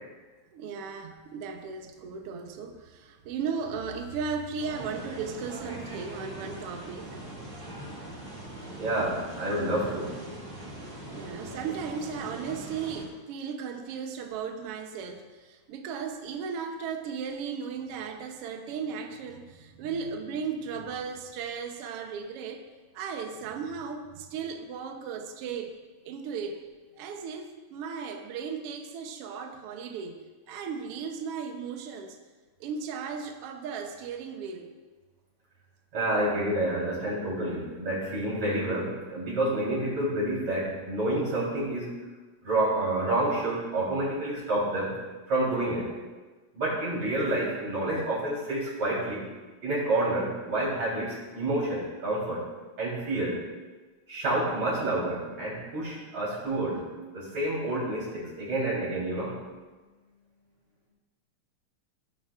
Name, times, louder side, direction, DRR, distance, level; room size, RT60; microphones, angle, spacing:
voice 1, 0.5-7.1 11.1-22.6 22.9-25.7 26.0-26.6 27.0-32.2 32.6-34.7, right 6 dB, 80° right, 3 dB, 1.3 m, -36 dB
sound 1, 4.6-13.1, right 1 dB, 20° right, 1.9 m, -41 dB
voice 2, 8.8-10.2 35.9-42.0 42.4-44.9 45.3-45.9 46.5-49.2 49.6-52.5 52.8-53.4 54.1-59.3, right 1 dB, 55° right, -6 dB, 4.7 m, -29 dB
16.5 x 8.0 x 2.5 m, 1.3 s
omnidirectional pair, 3.7 m